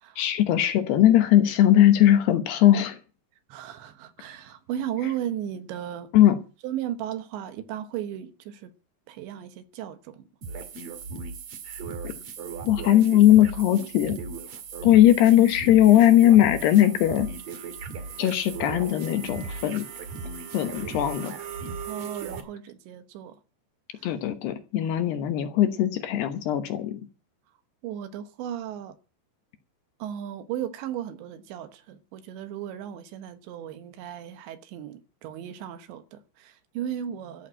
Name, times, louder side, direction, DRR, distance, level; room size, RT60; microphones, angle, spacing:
voice 1, 0.2-3.0 6.1-6.4 12.0-12.1 12.7-14.2 14.8-17.3 18.2-19.9 20.5-21.3 24.0-27.0, left 12 dB, 70° left, 2.9 m, -19 dB
voice 2, 3.5-6.1 6.6-8.7 9.1-10.2 21.9-23.4 23.9-24.1 24.8-25.0 27.8-29.0 30.0-37.5, right 10 dB, 75° right, 3.3 m, -35 dB
sound 1, 10.4-22.4, right 5 dB, 55° right, 2.0 m, -37 dB
14.0 x 6.5 x 8.7 m
omnidirectional pair, 5.3 m